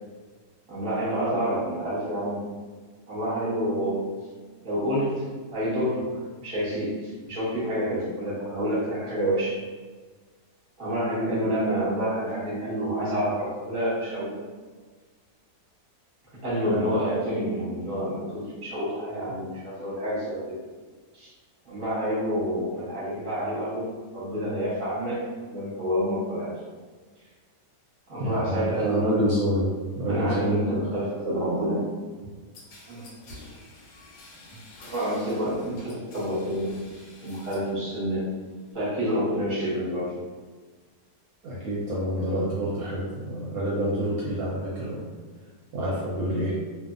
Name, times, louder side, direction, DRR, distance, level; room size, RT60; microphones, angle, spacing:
voice 1, 0.7-2.4 3.1-4.1 4.6-9.6 10.8-14.3 16.4-20.6 21.1-21.3 21.6-25.2 25.5-26.6 28.1-29.0 30.1-31.9 32.9-33.1 34.5-34.6 34.9-36.7 37.2-38.3 38.7-40.2, equal, 25° right, -8 dB, 0.8 m, -28 dB
voice 2, 28.2-29.7 30.0-30.7 41.4-45.0 45.7-46.6, equal, 70° right, -6 dB, 1.0 m, -27 dB
sound 1, 32.5-37.8 38.1-38.7, left 2 dB, 75° left, 1.1 m, -48 dB
2.6 x 2.4 x 2.4 m, 1.4 s
omnidirectional pair, 1.8 m